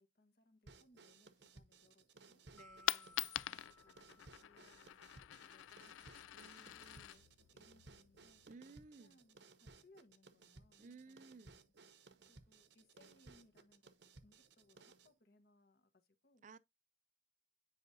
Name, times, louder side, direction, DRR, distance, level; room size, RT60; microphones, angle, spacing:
voice 1, 0.0-2.4 3.5-7.2 7.5-8.4 9.0-11.7 12.3-13.9 14.2-16.4, left 2 dB, 50° left, 1.2 m, -71 dB
sound 1, 0.7-15.1, right 3 dB, 60° right, 0.8 m, -62 dB
Coin (dropping), 2.5-8.5, left 14 dB, 80° left, 0.3 m, -45 dB
voice 2, 2.5-3.3 6.3-7.2 8.5-9.2 10.8-11.6 16.4-16.6, right 4 dB, 40° right, 0.4 m, -59 dB
sound 2, 2.6-5.3, left 2 dB, 5° left, 0.6 m, -64 dB
9.5 x 4.9 x 2.7 m
head